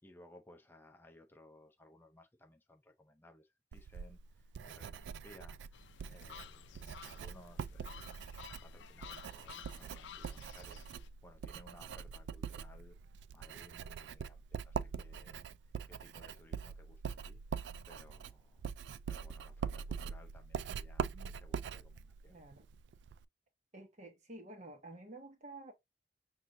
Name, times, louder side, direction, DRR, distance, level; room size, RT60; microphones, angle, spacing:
voice 1, 0.0-5.8 6.1-10.9 11.2-13.0 13.3-15.4 15.9-17.4 17.9-18.7 19.1-22.4, left 1 dB, 10° left, 0.5 m, -60 dB
Writing, 3.7-23.2, right 6 dB, 85° right, 0.3 m, -43 dB
sound 1, 5.7-11.1, left 9 dB, 90° left, 0.4 m, -53 dB
voice 2, 22.3-22.7 23.7-25.7, right 2 dB, 45° right, 1.2 m, -51 dB
6.0 x 2.7 x 2.5 m
head